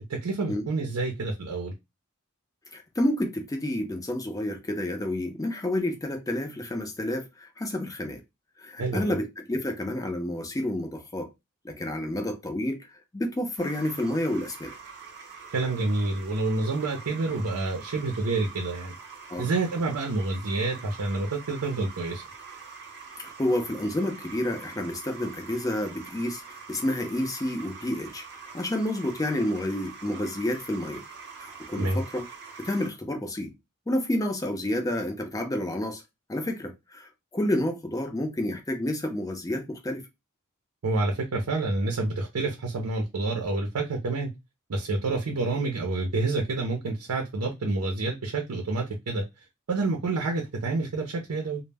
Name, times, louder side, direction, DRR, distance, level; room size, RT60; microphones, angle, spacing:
voice 1, 0.1-1.7 8.8-9.2 15.5-19.0 19.4-22.2 31.8-32.0 40.8-44.3 44.7-49.2 49.7-51.6, right 3 dB, 85° right, 0.6 m, -28 dB
voice 2, 2.7-8.2 8.6-11.3 11.6-12.9 13.1-14.7 19.3-19.5 23.2-28.2 28.5-31.0 31.4-32.3 32.6-33.5 33.9-36.0 36.3-40.0, left 1 dB, 15° left, 0.5 m, -29 dB
sound 1, 13.6-32.9, right 5 dB, 55° right, 0.8 m, -45 dB
2.1 x 2.1 x 3.3 m
head